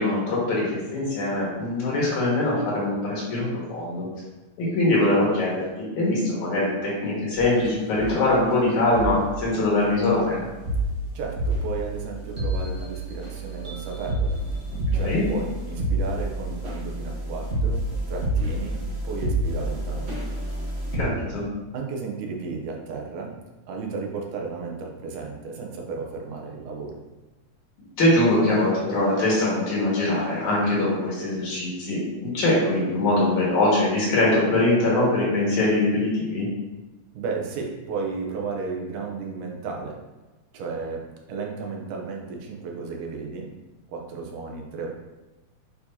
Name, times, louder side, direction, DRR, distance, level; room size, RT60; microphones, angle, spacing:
voice 1, 0.0-4.1 4.6-10.4 14.9-15.2 21.0-21.4 28.0-36.5, left 2 dB, 75° left, -5 dB, 3.3 m, -22 dB
sound 1, 7.3-7.7 7.9-8.1 8.9-9.1 9.8-21.0, right 1 dB, 50° right, 0.8 m, -28 dB
voice 2, 11.1-14.4 14.9-20.2 21.7-23.4 23.7-27.0 37.1-40.0 40.5-43.5 43.9-44.9, right 4 dB, 85° right, 0 dB, 2.4 m, -33 dB
7.9 x 4.6 x 2.8 m, 1.1 s
omnidirectional pair, 3.5 m